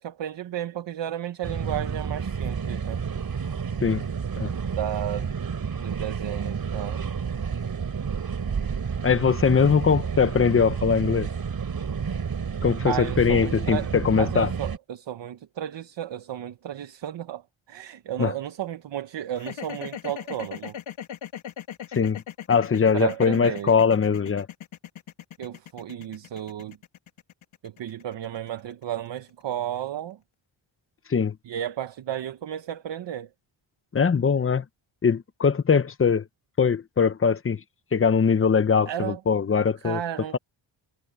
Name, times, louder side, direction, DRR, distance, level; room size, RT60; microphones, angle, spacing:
voice 1, 0.0-3.0 4.7-5.3 5.8-7.1 12.8-20.8 22.9-23.8 25.4-26.8 27.6-30.2 31.4-33.3 38.9-39.2 39.8-40.4, right 11 dB, 65° right, 1.1 m, -33 dB
sound 1, 1.4-14.8, right 6 dB, 50° right, 3.8 m, -30 dB
voice 2, 9.0-11.3 12.6-14.5 18.2-18.3 21.9-22.2 22.5-24.5 31.1-31.3 33.9-34.6 35.0-36.2 36.6-37.6 37.9-40.0, left 6 dB, 30° left, 0.9 m, -21 dB
sound 2, 19.4-29.5, left 9 dB, 90° left, 2.2 m, -39 dB
wide cardioid pair, 130°, 46 cm